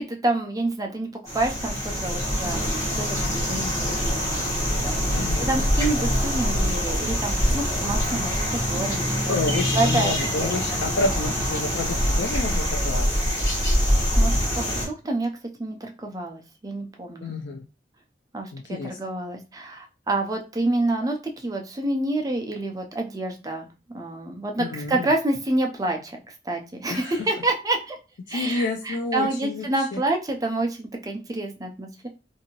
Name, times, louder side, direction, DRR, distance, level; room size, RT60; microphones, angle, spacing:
voice 1, 0.0-5.1 5.4-9.4 9.7-10.8 13.6-15.3 15.6-17.3 18.3-23.7 23.9-28.0 28.3-32.1, right 2 dB, 20° right, 3 dB, 0.5 m, -28 dB
sound 1, 1.3-14.9, equal, 15° left, 1.3 m, -24 dB
voice 2, 5.1-5.6 9.3-13.0 17.2-17.7 18.5-19.0 24.6-25.1 26.9-27.2 28.3-30.0, left 3 dB, 75° left, 2 dB, 0.4 m, -29 dB
2.7 x 2.6 x 2.9 m, 0.30 s
head